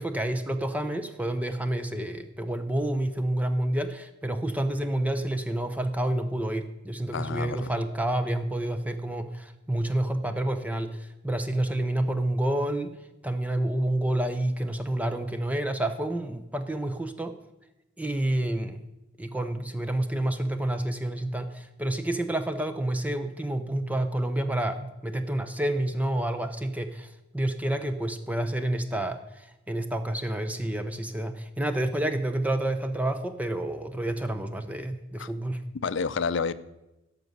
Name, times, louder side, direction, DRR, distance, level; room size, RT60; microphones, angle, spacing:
voice 1, 0.0-12.9 13.2-17.4 18.0-18.8 19.2-35.6, right 1 dB, 10° right, 8 dB, 0.5 m, -29 dB
voice 2, 7.1-7.7 35.2-35.3 35.8-36.5, left 5 dB, 65° left, 15 dB, 0.5 m, -29 dB
13.0 x 5.3 x 7.9 m, 0.97 s
head